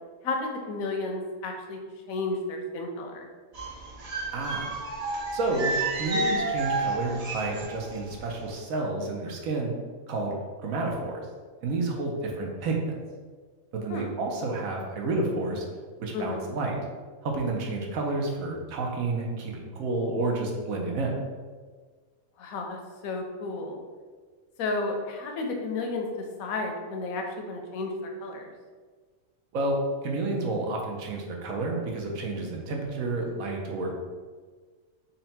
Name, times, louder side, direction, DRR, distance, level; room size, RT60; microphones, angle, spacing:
voice 1, 0.2-1.8 2.1-3.3 13.9-14.1 16.1-16.5 22.4-23.8 24.6-26.1 26.4-27.9 28.2-28.5, left 3 dB, 75° left, 2 dB, 1.0 m, -32 dB
sound 1, 3.5-8.0 8.3-8.5, right 2 dB, 50° right, 0.4 m, -30 dB
voice 2, 4.3-4.7 5.3-9.7 10.1-10.4 10.6-11.2 11.6-13.0 13.7-15.7 16.0-16.8 17.2-21.2 29.5-29.8 30.0-34.0, right 2 dB, 75° right, 0 dB, 1.1 m, -30 dB
4.1 x 2.2 x 4.1 m, 1.5 s
omnidirectional pair, 1.5 m